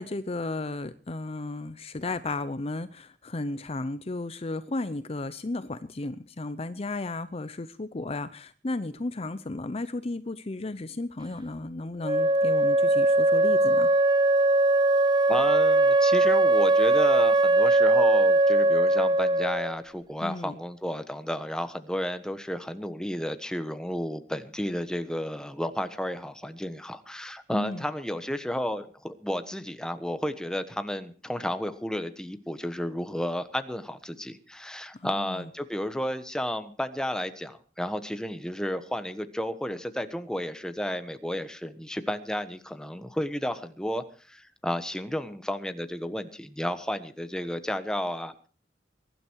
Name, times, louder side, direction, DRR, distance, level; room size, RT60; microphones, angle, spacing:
voice 1, 0.0-13.9 20.2-20.6 27.5-27.8 35.0-35.3, left 2 dB, 35° left, 13 dB, 0.7 m, -34 dB
Wind instrument woodwind instrument, 12.0-19.8, right 2 dB, 25° right, 0.9 m, -21 dB
voice 2, 15.3-48.5, equal, 5° left, 9 dB, 1.2 m, -32 dB
22.5 x 12.0 x 4.7 m, 0.39 s
head